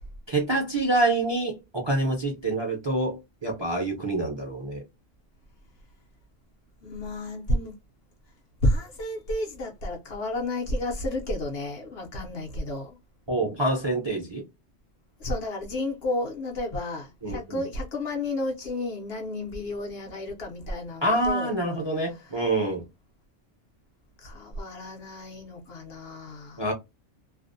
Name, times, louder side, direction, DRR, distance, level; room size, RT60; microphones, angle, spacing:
voice 1, 0.3-4.8 13.3-14.4 17.2-17.6 21.0-22.8 26.6-26.7, right 2 dB, 30° right, 0.5 m, -26 dB
voice 2, 6.8-7.7 8.6-13.0 15.2-21.5 21.9-22.4 24.2-26.6, left 1 dB, 60° left, 0.8 m, -31 dB
2.5 x 2.0 x 2.5 m
omnidirectional pair, 1.3 m